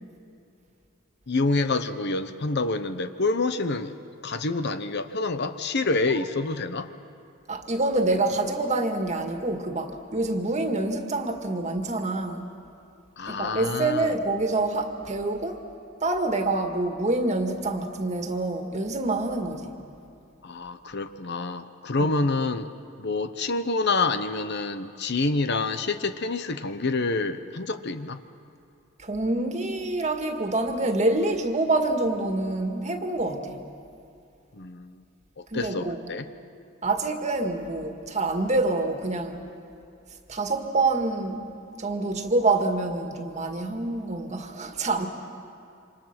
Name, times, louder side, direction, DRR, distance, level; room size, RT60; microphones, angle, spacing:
voice 1, 1.3-4.0 4.2-6.9 13.2-14.1 20.4-22.7 23.0-28.2 34.5-35.0 35.4-36.3, left 3 dB, 55° left, 10 dB, 0.9 m, -27 dB
voice 2, 7.5-12.4 13.3-15.6 16.0-19.8 22.0-22.1 29.0-33.7 35.5-36.0 36.8-39.4 40.3-41.4 41.8-45.1, right 2 dB, 35° right, 4 dB, 1.9 m, -26 dB
29.0 x 26.5 x 6.0 m, 2.6 s
head